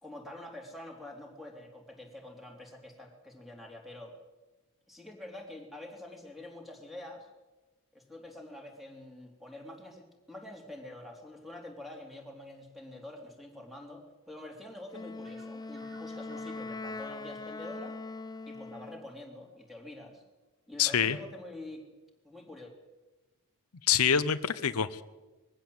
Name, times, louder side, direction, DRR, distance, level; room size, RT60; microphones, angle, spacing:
voice 1, 0.0-4.1 4.9-7.3 7.9-18.0 18.4-20.2 20.7-21.8 22.2-22.7, left 1 dB, ahead, 1 dB, 3.3 m, -46 dB
Wind instrument woodwind instrument, 14.9-19.1, left 3 dB, 20° left, 0.6 m, -41 dB
sound 1, 15.2-20.1, right 1 dB, 55° right, 4.9 m, -57 dB
voice 2, 20.8-21.2 23.9-25.0, left 8 dB, 75° left, 13 dB, 0.8 m, -26 dB
21.5 x 15.5 x 7.9 m, 1.1 s
head